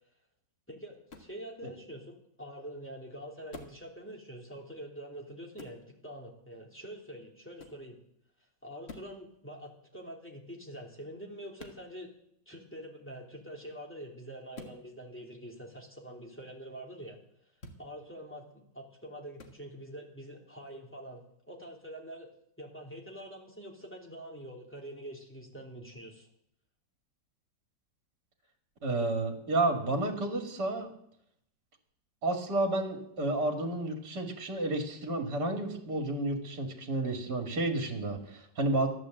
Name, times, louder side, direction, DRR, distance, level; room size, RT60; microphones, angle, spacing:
voice 1, 0.7-8.0 8.6-12.1 12.5-17.2 17.8-22.3 22.6-26.3, right 1 dB, 5° left, 0 dB, 3.0 m, -45 dB
sound 1, 1.1-1.4 3.5-3.8 5.6-5.8 7.6-7.8 8.8-9.2 11.6-11.8 14.5-14.8 17.6-17.8 19.4-19.6, left 3 dB, 35° left, 1.8 m, -47 dB
voice 2, 28.8-30.9 32.2-38.9, right 2 dB, 65° right, 3 dB, 2.9 m, -31 dB
14.0 x 11.0 x 7.8 m, 0.74 s
omnidirectional pair, 1.9 m